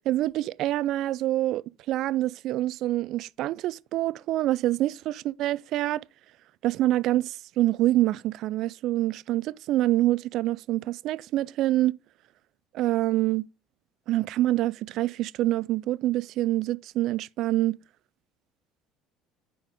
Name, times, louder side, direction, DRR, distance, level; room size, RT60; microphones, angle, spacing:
voice 1, 0.1-6.0 6.6-12.0 12.7-13.5 14.1-17.8, right 15 dB, 60° right, 0.3 m, -26 dB
9.6 x 4.3 x 4.9 m
hypercardioid pair, 70°, 0 cm